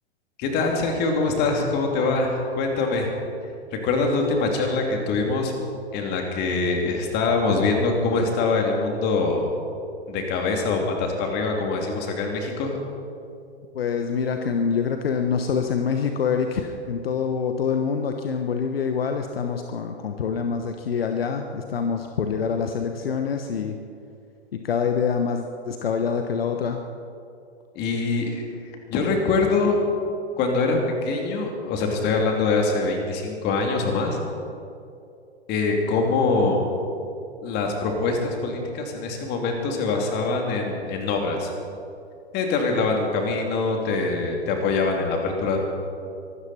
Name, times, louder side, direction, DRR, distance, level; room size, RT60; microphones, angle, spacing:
voice 1, 0.4-3.1 3.7-5.5 5.9-9.5 10.1-12.8 27.7-28.4 28.9-29.8 30.4-34.2 35.5-36.7 37.4-41.5 42.3-45.6, left 3 dB, 30° left, 2 dB, 2.9 m, -24 dB
voice 2, 13.7-23.8 24.5-26.8, left 6 dB, 65° left, 6 dB, 1.1 m, -25 dB
24.0 x 13.0 x 4.3 m, 2.6 s
figure-of-eight pair, 110°, 33 cm